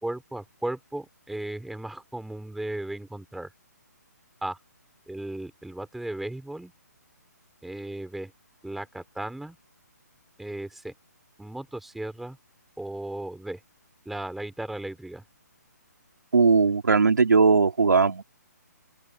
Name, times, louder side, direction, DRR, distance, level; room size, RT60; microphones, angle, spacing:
voice 1, 0.0-3.5 4.4-4.6 5.1-6.7 7.6-8.3 8.6-9.6 10.4-10.9 11.4-12.4 12.8-13.6 14.1-15.2, right 1 dB, ahead, 3.9 m, -35 dB
voice 2, 16.3-18.2, right 4 dB, 85° right, 3.6 m, -19 dB
open air
hypercardioid pair, 155°, 10 cm